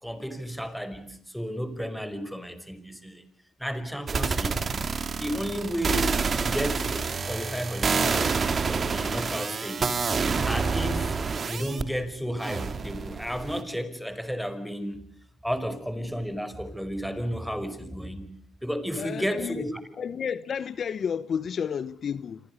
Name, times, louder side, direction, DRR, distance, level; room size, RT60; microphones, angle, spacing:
voice 1, 0.0-3.2 3.6-4.6 4.9-6.1 6.4-10.0 10.4-11.2 11.5-15.0 15.4-18.3 18.6-19.8, equal, ahead, 5.0 m, -33 dB
sound 1, 4.1-11.8 12.4-13.6, right 5 dB, 40° right, 3.0 m, -28 dB
voice 2, 19.0-19.7 20.0-22.4, left 7 dB, 55° left, 1.0 m, -31 dB
28.0 x 26.0 x 6.6 m
cardioid pair, 90°, 0 cm